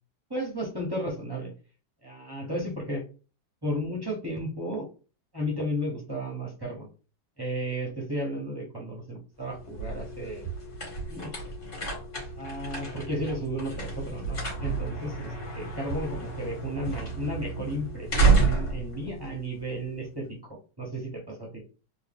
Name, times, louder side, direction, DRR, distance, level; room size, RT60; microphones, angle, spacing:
voice 1, 0.3-1.5 2.0-3.0 3.6-4.9 5.3-6.9 7.4-10.5 11.1-11.4 12.4-20.4 20.8-21.6, equal, 25° right, -2 dB, 0.5 m, -33 dB
sound 1, 9.4-20.1, right 4 dB, 45° left, 1.8 m, -30 dB
3.4 x 2.6 x 3.5 m, 0.35 s
omnidirectional pair, 1.9 m